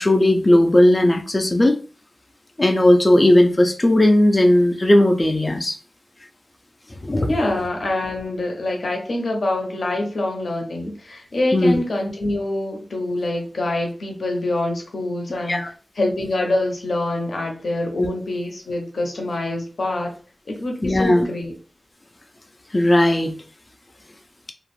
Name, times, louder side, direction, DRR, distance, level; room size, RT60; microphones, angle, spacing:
voice 1, 0.0-1.8 2.6-5.8 7.0-7.3 11.5-11.8 15.5-15.7 18.0-18.1 20.8-21.3 22.7-23.3, left 1 dB, 30° left, 5 dB, 0.3 m, -16 dB
voice 2, 7.3-20.1 20.5-21.5, left 2 dB, 75° left, 2 dB, 0.7 m, -25 dB
2.4 x 2.0 x 3.0 m, 0.38 s
wide cardioid pair, 85°, 0 cm